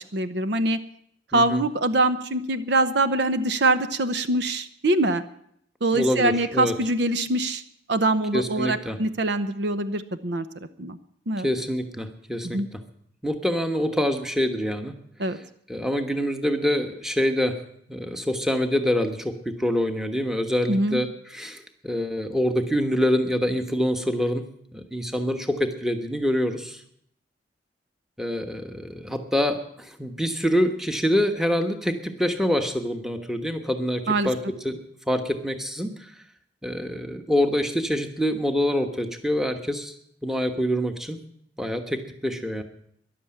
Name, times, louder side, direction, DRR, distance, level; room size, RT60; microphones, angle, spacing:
voice 1, 0.1-0.8 1.3-5.2 5.8-7.6 7.9-10.4 10.8-11.0 11.3-11.5 12.4-12.7 15.2-15.4 20.7-21.0 34.1-34.3, right 2 dB, 60° right, 11 dB, 0.8 m, -23 dB
voice 2, 1.3-1.6 5.9-6.7 8.3-9.0 11.4-12.8 13.2-14.9 15.3-15.4 15.7-17.6 17.9-24.4 24.7-26.8 28.2-34.8 35.1-36.1 36.6-39.9 40.2-41.2 41.6-42.6, equal, ahead, 6 dB, 1.2 m, -26 dB
14.0 x 11.0 x 8.6 m, 0.70 s
head